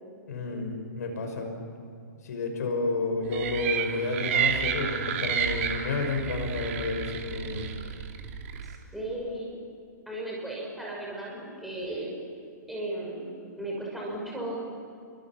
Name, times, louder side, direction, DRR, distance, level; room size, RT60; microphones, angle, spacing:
voice 1, 0.3-1.5 2.2-7.7, left 3 dB, 60° left, 4 dB, 6.0 m, -30 dB
sound 1, 3.3-8.7, right 8 dB, 45° right, 2.7 m, -31 dB
voice 2, 8.6-9.5 10.1-12.1 12.7-13.3 13.6-14.6, right 1 dB, ahead, -4 dB, 5.9 m, -35 dB
28.5 x 25.5 x 6.1 m, 2.3 s
figure-of-eight pair, 120°, 10 cm